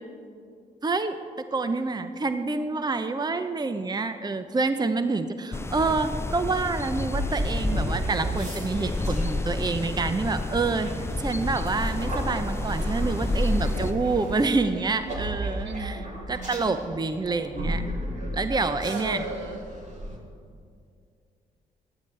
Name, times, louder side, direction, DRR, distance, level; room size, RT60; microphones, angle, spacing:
voice 1, 0.8-1.2 1.5-10.9 11.2-17.8 18.3-19.2, right 3 dB, 20° right, 10 dB, 0.7 m, -27 dB
sound 1, 5.5-13.9, left 2 dB, 15° left, 0.4 m, -31 dB
sound 2, 7.1-20.2, right 1 dB, 40° right, 3.4 m, -33 dB
sound 3, 8.4-14.6, right 1 dB, 90° right, 2.8 m, -45 dB
voice 2, 15.6-16.8 18.8-19.6, right 3 dB, 70° right, 5 dB, 1.5 m, -36 dB
18.5 x 12.5 x 3.4 m, 2.4 s
hypercardioid pair, 45°, 20 cm